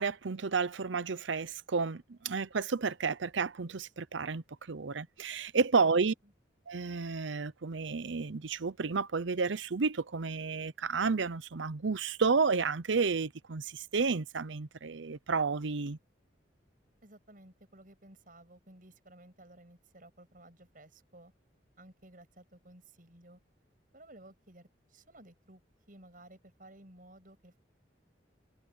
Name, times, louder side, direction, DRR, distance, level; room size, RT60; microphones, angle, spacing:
voice 1, 0.0-6.1 6.7-16.0, right 4 dB, 85° right, 0.7 m, -31 dB
voice 2, 5.7-6.3 17.0-21.3 21.8-23.4 23.9-25.6 25.9-27.6, right 1 dB, 45° right, 7.7 m, -56 dB
head